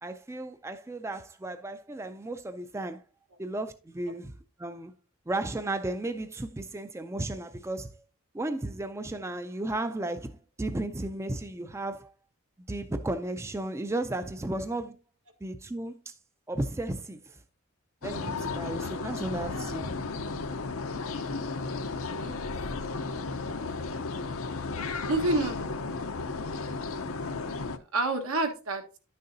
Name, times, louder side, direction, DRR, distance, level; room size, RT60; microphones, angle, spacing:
voice 1, 0.0-3.0 3.4-4.9 5.3-7.9 8.3-12.1 12.7-15.0 15.4-16.1 16.5-17.3 18.0-19.9, right 2 dB, 15° right, 0.4 m, -34 dB
sound 1, 18.0-27.8, left 3 dB, 70° left, 0.7 m, -34 dB
voice 2, 25.1-25.7 27.9-28.8, right 2 dB, 80° right, 1.3 m, -29 dB
10.5 x 6.6 x 2.6 m
head